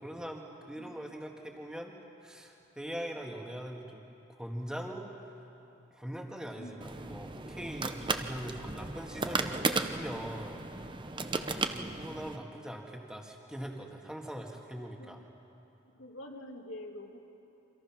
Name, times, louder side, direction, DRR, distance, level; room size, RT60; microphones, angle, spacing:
voice 1, 0.0-2.0 2.2-4.1 4.4-5.1 5.9-10.7 11.4-15.2, equal, 5° right, 1 dB, 1.9 m, -42 dB
voice 2, 6.6-7.3 11.3-12.0 14.8-15.2 16.0-17.2, left 1 dB, 65° left, 2 dB, 2.3 m, -48 dB
sound 1, 6.8-12.4, right 3 dB, 20° right, 0.7 m, -35 dB
28.0 x 26.0 x 6.1 m, 2.9 s
head